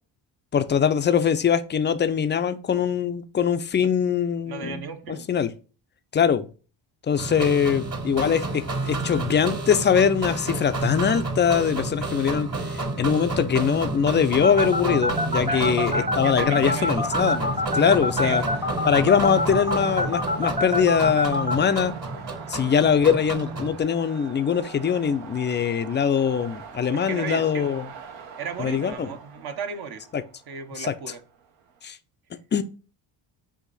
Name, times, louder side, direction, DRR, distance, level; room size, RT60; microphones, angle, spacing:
voice 1, 0.5-5.5 6.1-6.5 7.1-12.5 13.0-18.4 18.8-21.9 22.5-27.9 28.6-29.1 30.1-30.2 30.8-30.9 31.8-32.0 32.5-32.6, left 7 dB, 25° left, 0.4 m, -22 dB
voice 2, 4.4-5.3 15.5-17.3 18.2-18.6 26.9-27.8 28.4-30.0 30.5-31.2, right 6 dB, 50° right, 0.8 m, -35 dB
sound 1, 7.2-23.8, right 3 dB, 30° right, 1.1 m, -30 dB
sound 2, 14.4-21.5, left 2 dB, 10° right, 0.7 m, -25 dB
sound 3, 17.0-31.9, right 6 dB, 75° right, 0.9 m, -42 dB
4.8 x 2.6 x 3.9 m
supercardioid pair, 75°, 48 cm